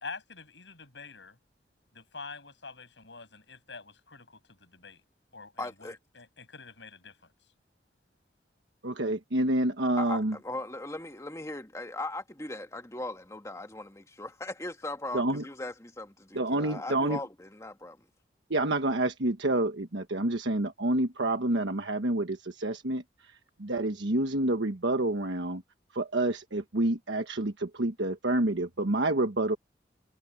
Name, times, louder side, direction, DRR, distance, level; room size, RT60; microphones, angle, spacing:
voice 1, 0.0-1.4 1.9-5.0 5.3-5.9 6.1-7.3, left 4 dB, 80° left, 7.5 m, -46 dB
voice 2, 5.6-6.0 10.0-18.1, left 2 dB, 15° left, 2.0 m, -39 dB
voice 3, 8.8-10.4 15.1-15.4 16.3-17.2 18.5-25.6 25.9-29.6, right 1 dB, 80° right, 1.3 m, -28 dB
head